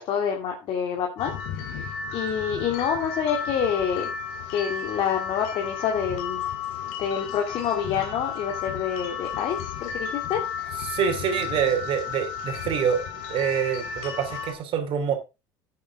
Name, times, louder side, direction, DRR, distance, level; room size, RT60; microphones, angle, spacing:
voice 1, 0.1-1.3 2.1-4.1 4.5-6.4 7.0-10.4, left 7 dB, 60° left, 2.5 m, -27 dB
sound 1, 1.2-14.5, left 7 dB, 80° left, 3.1 m, -33 dB
voice 2, 10.7-13.0 13.3-15.1, right 7 dB, 60° right, 2.7 m, -26 dB
11.5 x 8.6 x 3.5 m
supercardioid pair, 85°, 10 cm